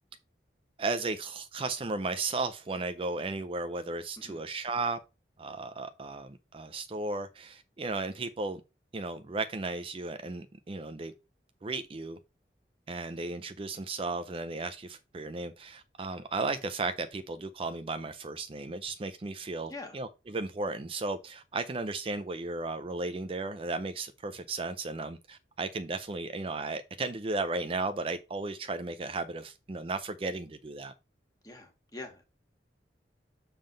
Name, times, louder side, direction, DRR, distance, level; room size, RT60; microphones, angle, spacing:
voice 1, 0.8-5.0 5.4-8.6 8.9-11.1 11.6-12.2 12.9-30.9, right 3 dB, 30° right, 0.4 m, -35 dB
voice 2, 31.4-32.2, left 2 dB, 20° left, 1.7 m, -44 dB
7.0 x 3.8 x 5.1 m
head